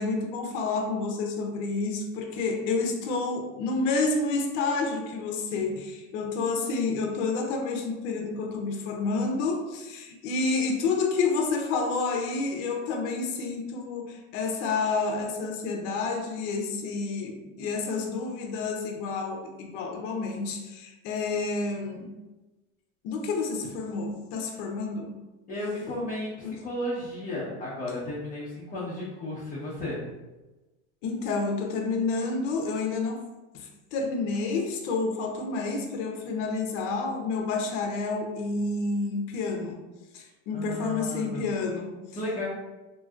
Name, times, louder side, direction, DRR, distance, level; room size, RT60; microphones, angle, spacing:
voice 1, 0.0-22.1 23.0-25.1 25.9-26.0 26.4-26.5 31.0-33.2 33.5-39.8 40.1-42.0, left 3 dB, 60° left, 2 dB, 0.7 m, -29 dB
voice 2, 25.5-30.0 40.5-41.5 42.1-42.5, left 1 dB, 20° left, -9 dB, 0.9 m, -34 dB
3.0 x 2.8 x 2.4 m, 1.1 s
supercardioid pair, 120°, 40 cm